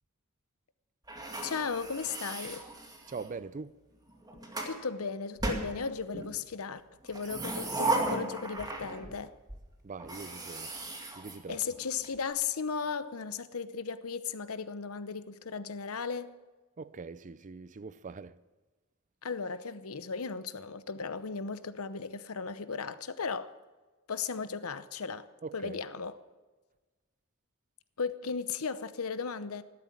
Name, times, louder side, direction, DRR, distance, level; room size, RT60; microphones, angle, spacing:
sound 1, 1.1-3.4 4.1-4.8 5.4-6.3 7.0-9.2 9.5-9.6 10.0-12.1, right 2 dB, 20° right, 2.2 m, -36 dB
voice 1, 1.4-2.6 4.6-9.3 11.5-16.3 19.2-23.5 24.1-25.3 25.5-26.2 28.0-29.6, left 5 dB, 75° left, 0.8 m, -36 dB
voice 2, 3.1-3.8 9.8-10.7 11.2-11.6 16.8-18.4 25.4-25.8, right 4 dB, 35° right, 0.5 m, -42 dB
14.5 x 12.0 x 7.3 m
head